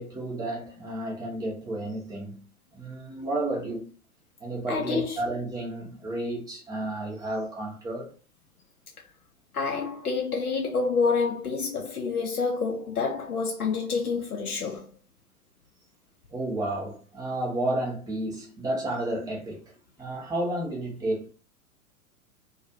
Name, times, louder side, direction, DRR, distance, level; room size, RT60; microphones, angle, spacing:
voice 1, 0.0-2.5 2.7-3.9 4.4-8.1 16.3-19.6 20.0-21.3, right 1 dB, 10° right, 0.6 m, -31 dB
voice 2, 4.7-5.2 9.5-14.9, left 4 dB, 85° left, 0.5 m, -28 dB
2.4 x 2.3 x 2.6 m
figure-of-eight pair, 95°, 43 cm